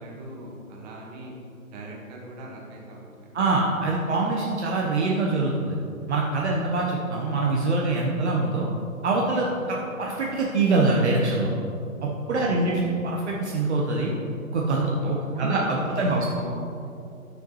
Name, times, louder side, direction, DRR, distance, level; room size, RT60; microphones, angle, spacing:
voice 1, 0.0-1.3 1.7-3.3 6.3-6.6 9.3-9.5 12.3-12.8 15.0-16.6, right 1 dB, 30° right, -2 dB, 1.5 m, -39 dB
voice 2, 3.3-5.8 6.1-8.7 9.0-11.5 12.0-14.1 14.5-16.2, right 3 dB, 50° right, -2 dB, 1.1 m, -24 dB
11.0 x 6.9 x 3.1 m, 2.7 s
figure-of-eight pair, 130°, 42 cm